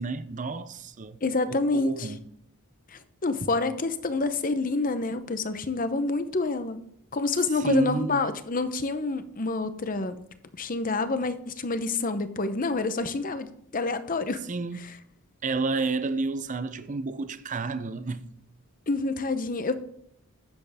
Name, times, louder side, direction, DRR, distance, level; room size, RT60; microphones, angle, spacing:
voice 1, 0.0-1.2 1.5-2.2 7.5-8.2 14.5-14.8 15.4-18.3, right 3 dB, 35° right, 0.6 m, -30 dB
voice 2, 1.2-2.1 2.9-6.8 7.1-10.2 10.6-14.4 14.8-14.9 18.9-19.7, left 3 dB, 40° left, 0.8 m, -28 dB
10.5 x 7.7 x 3.5 m
head